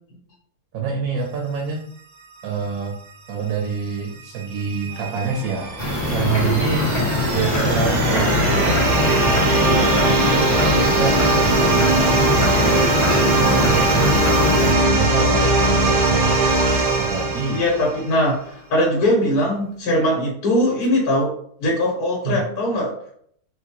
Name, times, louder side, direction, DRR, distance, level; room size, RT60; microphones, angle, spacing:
voice 1, 0.7-1.8 2.4-3.0 3.3-5.7 6.1-6.9 7.3-10.0 10.7-12.8 13.2-14.2 14.6-16.4 17.0-17.6 22.2-22.4, right 5 dB, 70° right, 0 dB, 1.1 m, -26 dB
sound 1, 4.4-18.2, right 2 dB, 90° right, 1.4 m, -20 dB
sound 2, 5.8-14.7, left 2 dB, 45° left, 1.4 m, -22 dB
voice 2, 17.5-21.3 21.6-22.9, left 1 dB, 65° left, -3 dB, 1.6 m, -20 dB
4.3 x 2.3 x 2.8 m, 0.63 s
omnidirectional pair, 1.7 m